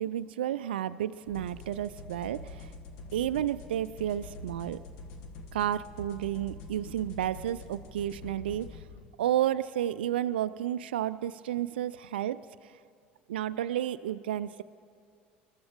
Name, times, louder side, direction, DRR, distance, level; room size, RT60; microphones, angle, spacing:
voice 1, 0.0-2.7 3.1-4.8 5.5-8.8 9.2-12.7 13.3-14.6, right 11 dB, 75° right, 13 dB, 0.4 m, -31 dB
sound 1, 1.3-9.0, left 3 dB, 65° left, 1.4 m, -46 dB
27.5 x 13.0 x 3.7 m, 2.3 s
hypercardioid pair, 65°, 5 cm